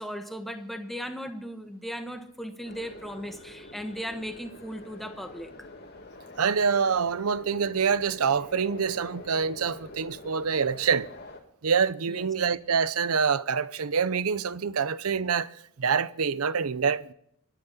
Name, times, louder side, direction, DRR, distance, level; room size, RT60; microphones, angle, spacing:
voice 1, 0.0-5.5 12.1-12.3, equal, ahead, 1.3 m, -37 dB
sound 1, 2.6-11.4, left 2 dB, 45° left, 2.4 m, -46 dB
voice 2, 6.4-11.1 11.6-15.5 15.8-17.1, right 6 dB, 90° right, 0.7 m, -26 dB
25.5 x 10.5 x 4.2 m
head